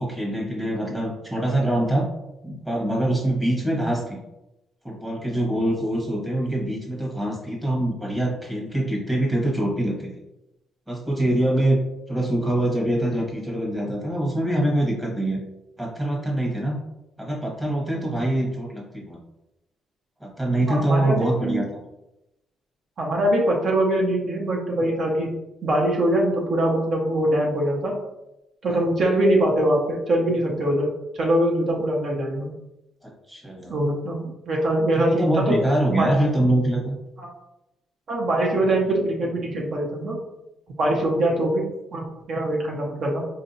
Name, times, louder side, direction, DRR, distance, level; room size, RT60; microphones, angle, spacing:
voice 1, 0.0-2.0 2.4-4.2 4.8-10.1 10.9-11.8 12.1-15.4 15.8-16.8 17.2-19.2 20.2-21.8 28.7-28.9 33.0-33.7 34.9-36.9, right 1 dB, 15° right, -2 dB, 1.2 m, -24 dB
voice 2, 20.7-21.7 23.0-25.4 25.6-27.9 28.6-30.9 31.1-32.5 33.7-35.5 35.9-36.1 37.2-37.3 38.1-40.1 40.8-41.6 41.9-43.3, right 1 dB, 55° right, -1 dB, 0.8 m, -23 dB
4.4 x 2.6 x 2.7 m, 0.91 s
cardioid pair, 110°, 0 cm